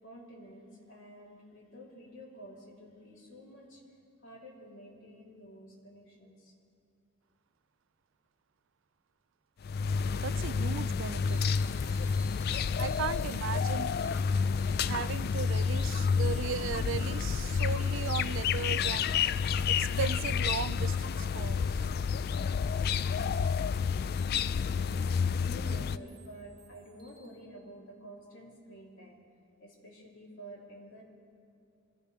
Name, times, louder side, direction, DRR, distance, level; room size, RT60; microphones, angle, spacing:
voice 1, 0.0-6.5 24.6-25.1 25.4-29.2 29.6-31.0, equal, 70° left, -4 dB, 3.5 m, -50 dB
sound 1, 9.6-26.0, left 6 dB, 50° left, 0.3 m, -30 dB
voice 2, 10.2-11.4 12.8-13.9 14.9-19.2 19.7-21.9, right 7 dB, 65° right, 18 dB, 0.3 m, -37 dB
sound 2, 11.3-27.3, right 4 dB, 50° right, 3.1 m, -59 dB
25.0 x 16.0 x 3.5 m, 2.3 s
head